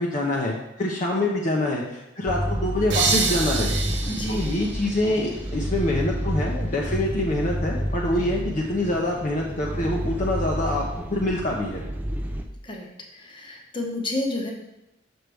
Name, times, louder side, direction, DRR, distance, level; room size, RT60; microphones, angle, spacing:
voice 1, 0.0-3.7 4.3-11.8, left 1 dB, 40° left, -2 dB, 0.7 m, -25 dB
sound 1, 2.3-12.5, equal, 10° right, 0.4 m, -29 dB
sound 2, 2.9-5.7, right 5 dB, 60° right, 0.9 m, -28 dB
voice 2, 4.1-4.5 12.6-12.9 13.1-14.5, left 2 dB, 25° left, 1 dB, 0.9 m, -30 dB
6.4 x 6.1 x 3.3 m, 0.89 s
head